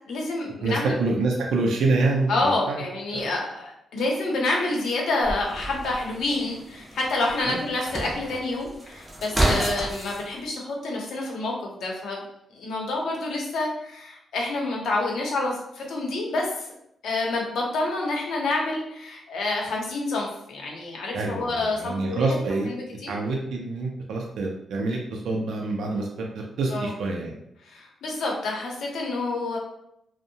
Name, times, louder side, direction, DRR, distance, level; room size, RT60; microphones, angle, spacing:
voice 1, 0.1-0.9 2.3-12.2 12.5-16.7 17.0-22.4 22.6-23.1 26.7-26.9 27.6-29.6, left 2 dB, 80° left, -1 dB, 0.7 m, -28 dB
voice 2, 0.6-2.8 3.1-3.3 7.4-7.6 21.1-22.7 23.1-27.3, right 3 dB, 80° right, 0 dB, 0.4 m, -26 dB
sound 1, 5.2-10.2, right 1 dB, 10° right, 0.4 m, -30 dB
2.6 x 2.0 x 2.7 m, 0.78 s
wide cardioid pair, 150°, 0 cm